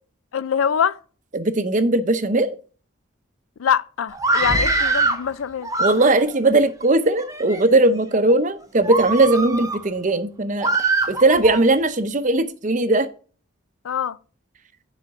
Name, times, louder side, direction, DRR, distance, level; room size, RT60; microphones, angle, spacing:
voice 1, 0.3-1.0 3.6-5.7 13.8-14.2, left 7 dB, 80° left, 0.4 m, -23 dB
voice 2, 1.3-2.5 5.8-10.7 11.1-13.1, right 2 dB, 35° right, 0.6 m, -19 dB
Screaming, 4.1-5.2 5.6-6.4 7.1-7.6 8.1-8.3 8.8-9.8 10.6-11.6, right 2 dB, 15° right, 0.9 m, -23 dB
9.4 x 5.0 x 4.6 m
head